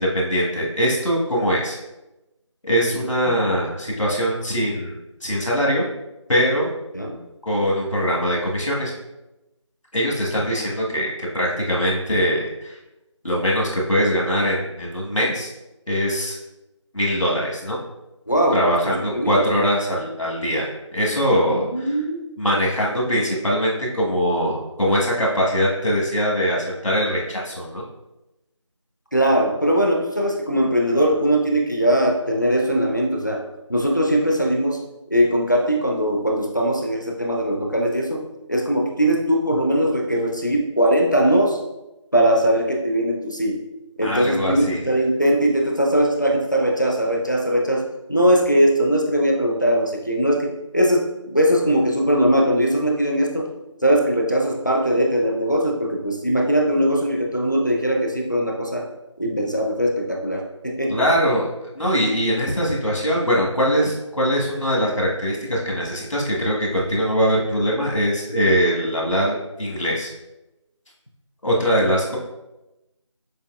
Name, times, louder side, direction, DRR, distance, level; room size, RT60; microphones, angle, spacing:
voice 1, 0.0-1.8 2.6-5.0 5.2-5.8 6.3-6.7 7.4-8.9 9.9-12.8 13.2-15.5 15.9-16.4 16.9-17.8 18.5-21.9 22.4-27.8 44.0-44.8 60.9-70.1 71.4-72.2, equal, 85° left, -3 dB, 1.4 m, -22 dB
voice 2, 2.9-3.4 6.9-7.2 18.3-18.7 19.0-19.5 21.5-22.3 29.1-33.4 33.7-41.6 42.1-43.7 44.0-53.5 53.8-58.9 59.2-61.0, equal, 40° left, 0 dB, 0.5 m, -20 dB
6.8 x 2.7 x 2.4 m, 0.97 s
figure-of-eight pair, 180°, 16 cm